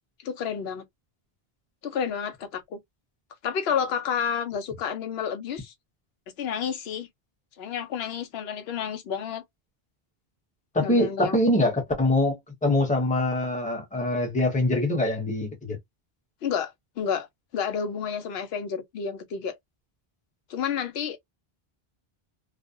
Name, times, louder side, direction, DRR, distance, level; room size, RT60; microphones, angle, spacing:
voice 1, 0.2-0.8 1.8-2.8 3.4-5.7 6.4-7.1 7.6-9.4 10.8-11.4 16.4-17.3 17.5-19.6 20.5-21.2, left 7 dB, 80° left, 0.8 m, -30 dB
voice 2, 10.7-15.8, left 1 dB, 10° left, 0.7 m, -24 dB
2.4 x 2.0 x 2.6 m
omnidirectional pair, 1.0 m